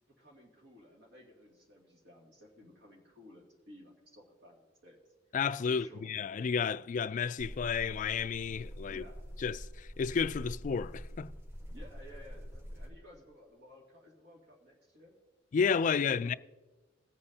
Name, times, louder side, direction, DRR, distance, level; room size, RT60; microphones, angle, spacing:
voice 1, 0.0-5.0 5.3-5.4 5.7-6.1 8.9-9.2 11.7-15.2 16.0-16.4, left 1 dB, 60° right, 2.4 m, -56 dB
voice 2, 5.3-9.0 9.4-11.3 15.5-16.3, left 6 dB, 40° left, 0.3 m, -31 dB
sound 1, 7.4-12.9, equal, 15° right, 1.3 m, -45 dB
21.0 x 8.7 x 2.8 m
head